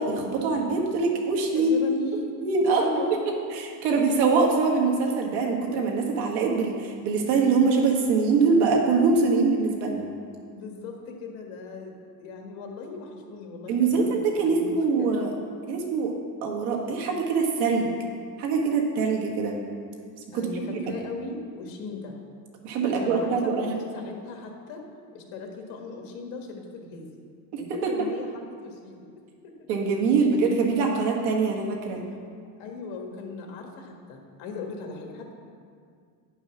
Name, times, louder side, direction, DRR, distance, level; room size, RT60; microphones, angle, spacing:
voice 1, 0.0-1.7 2.4-3.0 3.5-10.1 13.7-15.3 15.7-16.1 16.4-17.9 18.4-19.5 20.3-20.4 20.9-21.0 22.6-23.7 27.5-28.1 29.7-32.0, right 4 dB, 65° right, 0 dB, 1.6 m, -23 dB
voice 2, 1.5-3.1 10.5-14.7 15.0-15.3 20.3-22.2 22.8-24.8 25.1-27.2 27.6-29.1 29.4-29.7 32.6-35.3, left 3 dB, 65° left, 2 dB, 1.7 m, -38 dB
9.4 x 5.6 x 5.9 m, 2.2 s
cardioid pair, 155°, 44 cm